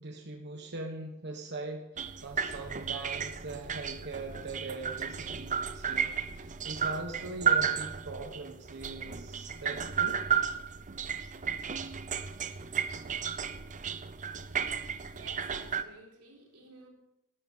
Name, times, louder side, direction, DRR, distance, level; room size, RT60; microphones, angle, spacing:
voice 1, 0.0-10.2, right 2 dB, 50° right, 3 dB, 1.3 m, -41 dB
sound 1, 2.0-15.8, right 7 dB, 35° right, 0.7 m, -33 dB
voice 2, 15.1-16.9, right 3 dB, 90° right, 0 dB, 3.8 m, -51 dB
13.0 x 12.5 x 5.7 m, 0.92 s
head